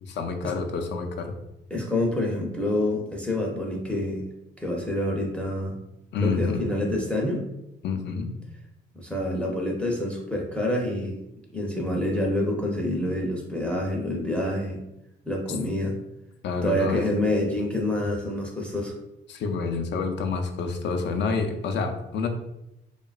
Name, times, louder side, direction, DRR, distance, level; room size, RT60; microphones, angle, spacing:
voice 1, 0.0-1.3 6.1-6.6 7.8-8.3 16.4-17.1 19.3-22.3, left 4 dB, 65° left, 5 dB, 0.5 m, -28 dB
voice 2, 1.7-4.2 4.6-5.8 6.2-7.4 8.9-11.2 11.5-14.8 15.3-16.0 16.6-18.9, left 1 dB, 5° left, -1 dB, 0.5 m, -27 dB
2.9 x 2.3 x 2.3 m, 0.86 s
cardioid pair, 90°, 20 cm